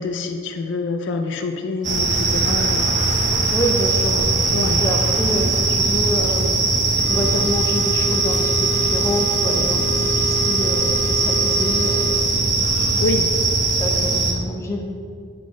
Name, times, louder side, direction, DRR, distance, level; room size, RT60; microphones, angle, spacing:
voice 1, 0.0-2.9 4.5-4.8 13.0-13.3, left 3 dB, 60° left, 5 dB, 0.4 m, -26 dB
sound 1, 1.8-14.3, right 3 dB, 40° right, 0.7 m, -20 dB
voice 2, 3.5-4.3 4.8-6.6 7.1-12.6 13.7-15.0, equal, 15° left, 0 dB, 0.7 m, -27 dB
sound 2, 7.0-12.1, left 1 dB, 85° right, 1.6 m, -30 dB
7.5 x 4.2 x 5.0 m, 2.2 s
head